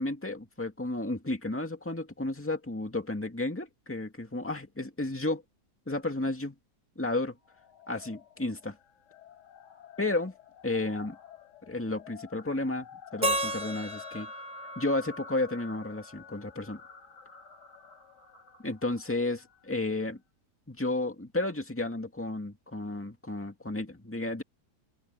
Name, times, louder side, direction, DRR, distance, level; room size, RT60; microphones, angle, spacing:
voice 1, 0.0-5.4 5.9-6.6 7.0-7.4 7.9-8.8 10.0-10.3 10.6-11.2 11.7-14.3 14.8-16.8 18.6-20.2 20.7-24.4, left 2 dB, 10° left, 2.0 m, -32 dB
sound 1, 7.4-19.9, left 8 dB, 85° left, 4.5 m, -51 dB
Keyboard (musical), 13.2-16.2, right 1 dB, 25° right, 1.8 m, -34 dB
omnidirectional pair, 1.8 m